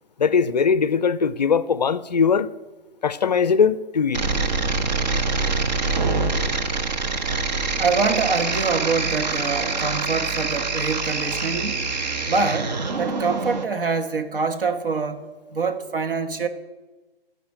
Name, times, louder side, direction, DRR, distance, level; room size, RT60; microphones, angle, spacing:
voice 1, 0.2-2.5 3.0-4.2, left 6 dB, 45° left, 0.4 m, -20 dB
sound 1, 4.1-13.6, right 4 dB, 45° right, 1.0 m, -25 dB
voice 2, 7.8-11.8 12.3-16.5, right 4 dB, 65° right, 1.3 m, -25 dB
13.5 x 5.2 x 8.8 m
figure-of-eight pair, 145°, 30 cm